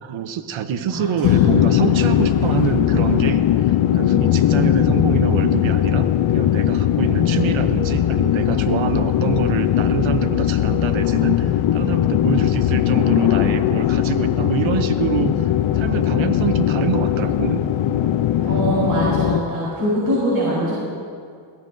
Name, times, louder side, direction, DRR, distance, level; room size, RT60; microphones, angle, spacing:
voice 1, 0.0-6.1 6.3-17.6, right 7 dB, 85° right, 9 dB, 0.9 m, -25 dB
voice 2, 0.9-1.5 18.5-20.7, right 1 dB, 50° right, -7 dB, 4.4 m, -23 dB
sound 1, 1.2-19.4, left 11 dB, 75° left, 0.6 m, -19 dB
22.5 x 15.5 x 2.6 m, 2.2 s
cardioid pair, 80°, 46 cm